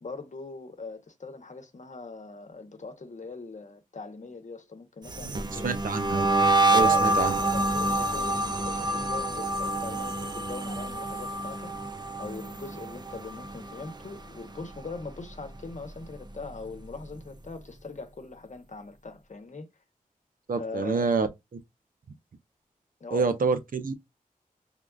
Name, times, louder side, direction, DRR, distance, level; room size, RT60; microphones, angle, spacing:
voice 1, 0.0-5.7 6.7-11.7 12.2-19.7 20.5-21.1 23.0-23.3, left 3 dB, 55° left, 0.9 m, -41 dB
sound 1, 5.0-14.2 14.5-14.9 15.3-16.8, right 2 dB, 30° right, 0.6 m, -27 dB
voice 2, 5.4-6.3 6.7-7.4 20.5-21.3 23.1-23.9, right 4 dB, 70° right, 0.6 m, -27 dB
3.6 x 2.4 x 2.3 m
cardioid pair, 55°, 15 cm